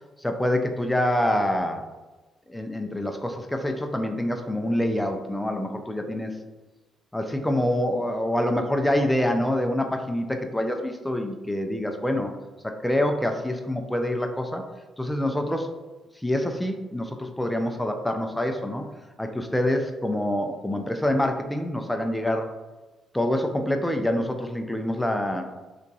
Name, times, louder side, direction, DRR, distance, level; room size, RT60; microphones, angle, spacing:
voice 1, 0.2-1.9 2.5-6.4 7.1-12.3 12.8-14.6 15.0-15.7 16.2-18.9 19.2-22.5 23.1-25.5, left 1 dB, 5° left, 4 dB, 0.4 m, -26 dB
3.4 x 2.9 x 2.7 m, 1.2 s
cardioid pair, 90°, 0 cm